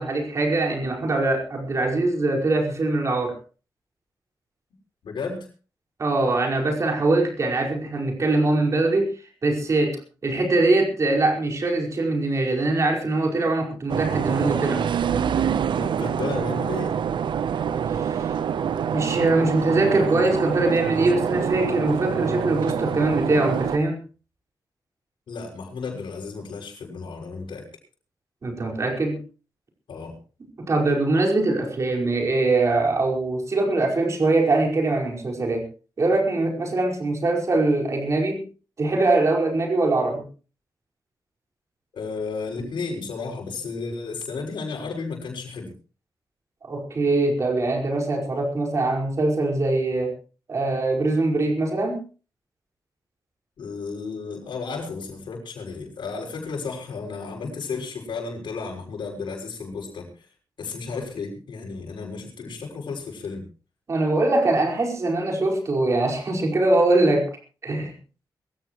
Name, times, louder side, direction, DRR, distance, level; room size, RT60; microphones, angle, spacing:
voice 1, 0.0-3.4 6.0-9.1 9.4-10.0 10.2-14.8 17.9-18.3 18.9-24.0 28.4-29.2 30.6-35.6 36.0-38.4 38.8-40.2 46.6-50.1 50.5-52.0 63.9-67.3 67.6-67.9, right 2 dB, 40° right, 1 dB, 5.2 m, -22 dB
voice 2, 5.0-5.5 15.8-16.9 25.3-27.7 29.9-30.2 41.9-45.7 53.6-60.3 60.6-63.5, left 4 dB, 85° left, 0 dB, 6.2 m, -33 dB
sound 1, 13.9-23.8, right 8 dB, 80° right, 0.8 m, -26 dB
23.0 x 15.5 x 3.1 m, 0.37 s
wide cardioid pair, 175°, 8 cm